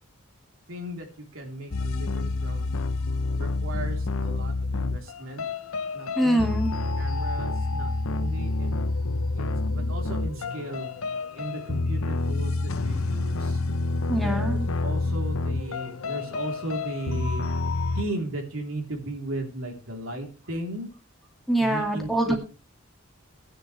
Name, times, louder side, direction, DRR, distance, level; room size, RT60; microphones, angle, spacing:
voice 1, 0.7-2.7 3.3-5.4 5.9-8.8 9.3-10.9 11.3-13.6 14.2-17.5 17.9-20.9 21.6-22.3, right 1 dB, 75° right, 1 dB, 3.4 m, -36 dB
sound 1, 1.7-18.0, left 3 dB, 85° left, 0.8 m, -28 dB
voice 2, 6.2-6.7 14.1-14.7 21.5-22.3, right 1 dB, ahead, 2 dB, 2.1 m, -24 dB
17.0 x 9.8 x 3.3 m, 0.33 s
head